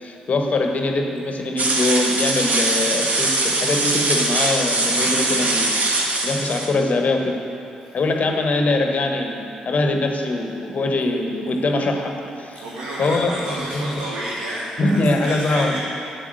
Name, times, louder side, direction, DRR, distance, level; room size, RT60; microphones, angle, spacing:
voice 1, 0.0-7.4 7.9-12.6 13.0-13.3 13.7-13.9 14.8-15.8, left 2 dB, 45° left, 3 dB, 1.3 m, -22 dB
sound 1, 1.6-6.7, right 2 dB, 45° right, 1.6 m, -21 dB
voice 2, 12.5-15.8, right 1 dB, 70° right, -5 dB, 1.3 m, -30 dB
8.8 x 7.3 x 7.7 m, 2.7 s
figure-of-eight pair, 40°, 3 cm